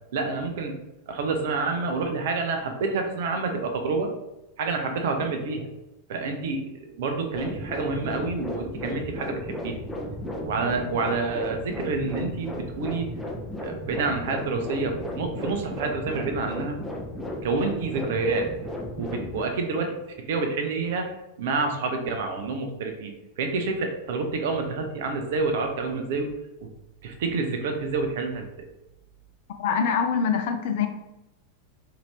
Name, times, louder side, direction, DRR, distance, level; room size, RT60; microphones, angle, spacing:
voice 1, 0.1-0.8 1.1-4.1 4.6-5.7 6.1-9.8 10.4-13.1 13.6-16.8 17.4-18.5 19.0-26.3 26.6-26.7 27.0-28.7, right 4 dB, 55° right, 5 dB, 0.5 m, -28 dB
sound 1, 7.3-19.5, left 1 dB, ahead, 0.5 m, -34 dB
voice 2, 29.6-30.9, left 6 dB, 50° left, 6 dB, 0.4 m, -24 dB
2.7 x 2.5 x 3.3 m, 0.96 s
figure-of-eight pair, 90°, 0 cm